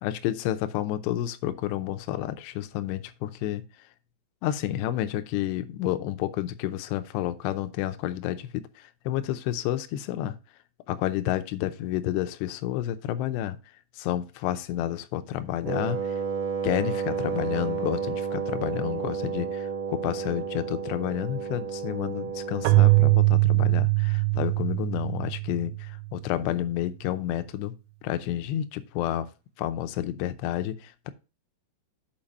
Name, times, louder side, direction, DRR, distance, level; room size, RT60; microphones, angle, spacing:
voice 1, 0.0-3.9 4.4-10.4 10.9-13.6 13.9-16.2 16.6-27.7 28.0-29.3 29.6-31.1, left 12 dB, 80° left, 2.6 m, -30 dB
Wind instrument woodwind instrument, 15.6-23.3, right 6 dB, 55° right, 1.4 m, -31 dB
Keyboard (musical), 22.7-26.2, right 24 dB, 85° right, 3.0 m, -22 dB
7.4 x 4.6 x 5.3 m
omnidirectional pair, 5.4 m